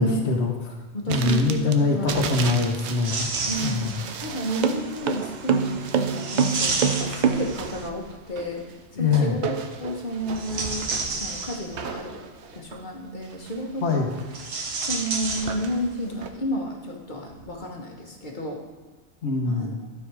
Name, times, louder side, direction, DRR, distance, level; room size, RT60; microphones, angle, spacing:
voice 1, 0.0-0.7 1.1-3.3 3.6-3.9 9.0-9.3 13.8-14.1 19.2-19.7, left 4 dB, 80° left, 2 dB, 1.3 m, -23 dB
voice 2, 0.9-2.4 3.5-3.9 4.2-8.6 9.0-10.9 11.2-12.2 12.5-14.1 14.9-18.6 19.5-19.7, equal, 45° left, 0 dB, 1.4 m, -31 dB
sound 1, 1.1-16.3, right 7 dB, 90° right, 1.0 m, -37 dB
sound 2, 3.0-4.2 6.1-8.0 10.2-12.0 14.2-16.3 17.3-17.5, right 4 dB, 65° right, 1.2 m, -30 dB
sound 3, 3.3-7.9, right 6 dB, 50° right, 0.6 m, -26 dB
12.0 x 4.9 x 4.8 m, 1.4 s
omnidirectional pair, 1.1 m